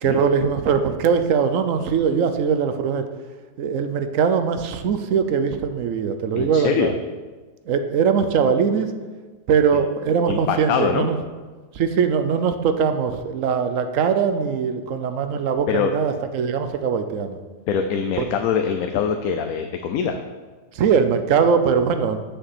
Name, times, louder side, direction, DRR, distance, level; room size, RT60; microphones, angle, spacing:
voice 1, 0.0-3.0 3.6-6.9 7.7-8.9 9.5-11.2 11.7-17.4 18.2-18.3 20.7-22.2, right 6 dB, 65° right, 8 dB, 1.0 m, -21 dB
voice 2, 6.3-6.9 10.3-11.1 15.7-15.9 17.7-20.2, left 7 dB, 70° left, 6 dB, 1.0 m, -23 dB
6.8 x 5.8 x 7.3 m, 1.3 s
omnidirectional pair, 1.7 m